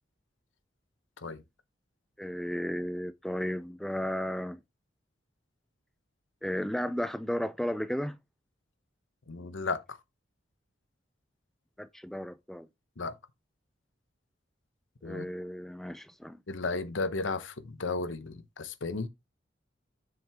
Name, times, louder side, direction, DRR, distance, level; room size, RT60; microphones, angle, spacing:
voice 1, 2.2-4.6 6.4-8.2 11.8-12.7 15.0-16.4, equal, ahead, 0.4 m, -34 dB
voice 2, 9.3-10.0 13.0-13.2 15.0-15.3 16.5-19.1, left 3 dB, 90° left, 0.9 m, -34 dB
7.6 x 6.0 x 3.5 m
head